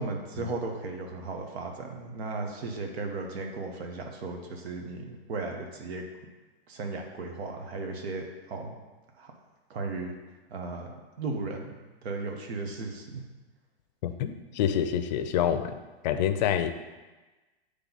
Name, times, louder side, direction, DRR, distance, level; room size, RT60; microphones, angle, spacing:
voice 1, 0.0-6.0 6.7-8.7 9.2-9.3 9.7-10.1 10.5-10.9 11.2-13.2, right 3 dB, 85° right, 2 dB, 1.1 m, -36 dB
voice 2, 14.0-15.8 16.0-16.7, left 9 dB, 45° left, 9 dB, 0.5 m, -27 dB
8.5 x 3.3 x 4.0 m, 1.2 s
supercardioid pair, 155°, 31 cm